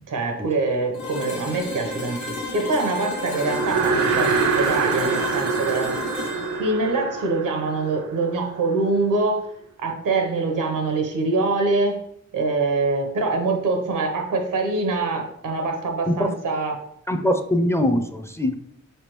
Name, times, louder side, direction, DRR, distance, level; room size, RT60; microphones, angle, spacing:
voice 1, 0.1-6.0 6.5-9.5 9.8-12.0 12.3-16.8, right 3 dB, 90° right, 3 dB, 0.9 m, -24 dB
sound 1, 0.9-8.8, left 2 dB, 75° left, 1.1 m, -33 dB
sound 2, 3.2-8.7, right 5 dB, 65° right, 0.5 m, -25 dB
voice 2, 16.1-16.4 17.1-18.6, left 1 dB, 10° left, 7 dB, 0.4 m, -22 dB
4.6 x 3.4 x 3.0 m, 0.74 s
cardioid pair, 55°, 31 cm